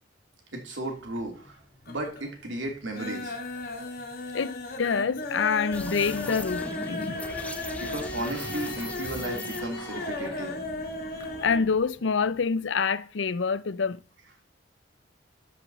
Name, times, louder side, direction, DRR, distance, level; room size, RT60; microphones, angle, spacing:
voice 1, 0.5-1.6 1.9-3.3 7.8-10.6, right 1 dB, 80° right, 2.8 m, -34 dB
sound 1, 0.9-1.5 1.8-2.3 2.6-11.7 12.0-12.1 12.4-12.5, left 2 dB, 50° left, 1.8 m, -36 dB
voice 2, 4.3-7.2 11.4-14.0, left 5 dB, 75° left, 0.5 m, -26 dB
sound 2, 5.7-11.9, left 1 dB, 10° left, 0.7 m, -40 dB
12.5 x 5.2 x 4.1 m
head